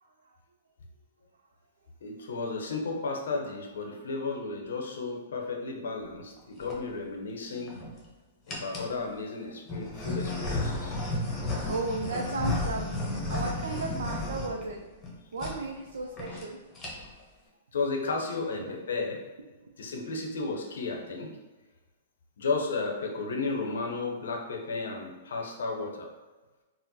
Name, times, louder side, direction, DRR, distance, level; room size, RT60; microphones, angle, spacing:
voice 1, 0.0-0.4 3.9-4.2 11.1-11.3 11.7-14.8 15.3-16.6 18.6-18.7 19.6-19.7, right 3 dB, 85° right, 1 dB, 0.4 m, -35 dB
voice 2, 2.0-7.8 8.5-11.0 17.7-19.2 19.8-21.4 22.4-26.1, left 3 dB, 80° left, 2 dB, 0.6 m, -33 dB
sound 1, 6.4-6.8 7.5-8.0 8.5-8.9 9.7-15.1 15.4-15.6 15.9-16.0 16.2-16.4 16.7-17.2, left 2 dB, 25° left, 0.8 m, -33 dB
3.6 x 2.0 x 2.7 m, 1.2 s
hypercardioid pair, 125°, 0 cm